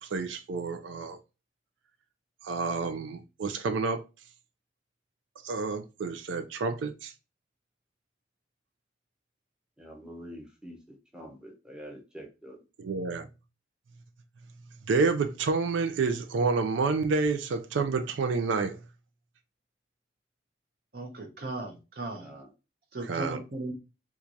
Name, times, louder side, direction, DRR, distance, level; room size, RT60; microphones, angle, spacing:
voice 1, 0.0-1.2 2.4-4.0 5.4-7.1 12.8-13.3 14.9-18.8 23.0-23.4, right 4 dB, 90° right, 0.4 m, -29 dB
voice 2, 9.8-10.8 11.1-12.6 22.2-22.5, equal, 5° right, 0.7 m, -45 dB
voice 3, 20.9-22.3 22.9-23.7, right 2 dB, 55° right, 0.7 m, -37 dB
4.4 x 2.3 x 2.5 m
head